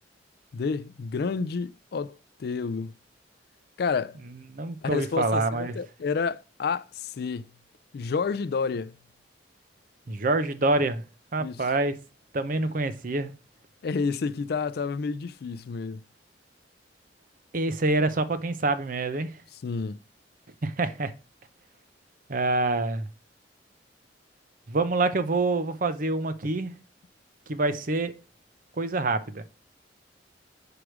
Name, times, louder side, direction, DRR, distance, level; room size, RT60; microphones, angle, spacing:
voice 1, 0.5-2.9 3.8-4.2 4.8-7.5 7.9-9.0 11.4-11.7 13.8-16.0 19.6-20.0, left 5 dB, 60° left, 0.4 m, -30 dB
voice 2, 4.5-5.8 10.1-11.0 11.3-12.0 12.3-13.3 17.5-19.3 20.6-21.1 22.3-23.1 24.7-26.7 27.5-28.1 28.8-29.4, right 2 dB, 50° right, 0.7 m, -26 dB
4.9 x 4.8 x 6.1 m
head